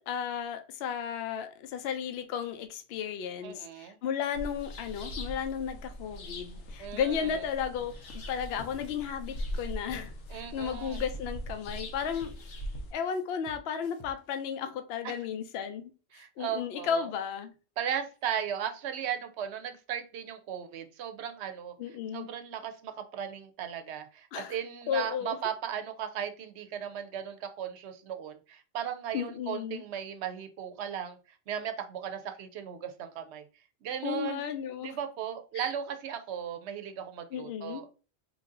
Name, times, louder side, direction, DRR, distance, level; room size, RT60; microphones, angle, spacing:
voice 1, 0.0-7.9 8.3-12.4 12.9-15.9 16.4-17.5 21.8-22.3 24.3-24.6 24.9-25.4 29.1-29.8 34.0-35.0 35.5-35.7 37.3-37.8, left 8 dB, 65° left, 0.8 m, -34 dB
voice 2, 3.4-4.0 6.8-7.4 10.3-11.0 15.0-15.2 16.1-17.1 17.8-21.7 22.1-31.2 31.5-33.5 33.8-34.5 34.8-37.9, right 8 dB, 75° right, 0.8 m, -36 dB
sound 1, 4.3-12.9, equal, 90° left, 1.1 m, -40 dB
sound 2, 8.8-9.0 9.3-11.9 12.2-14.4, left 2 dB, 35° left, 0.5 m, -51 dB
3.2 x 2.6 x 3.7 m
omnidirectional pair, 1.2 m